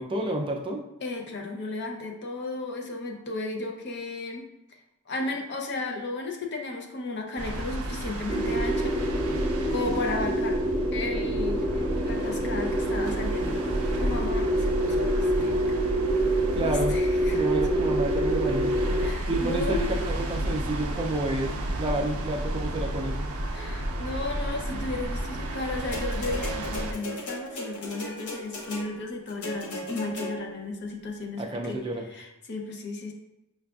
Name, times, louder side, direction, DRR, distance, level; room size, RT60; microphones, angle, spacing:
voice 1, 0.0-0.8 16.5-16.9 17.3-18.8 19.3-21.5 21.8-23.3 31.4-32.0, right 1 dB, 25° right, 1 dB, 0.3 m, -29 dB
voice 2, 1.0-4.5 5.1-8.9 9.7-10.6 10.9-15.8 16.6-17.4 19.0-20.0 23.5-33.1, left 2 dB, 50° left, 2 dB, 0.6 m, -34 dB
sound 1, 7.4-26.9, right 1 dB, 85° right, 0.5 m, -31 dB
sound 2, 8.3-19.1, right 1 dB, 5° left, 0.8 m, -27 dB
sound 3, 25.9-30.7 31.6-31.7, left 1 dB, 85° left, 0.9 m, -37 dB
5.7 x 2.4 x 2.3 m, 0.91 s
head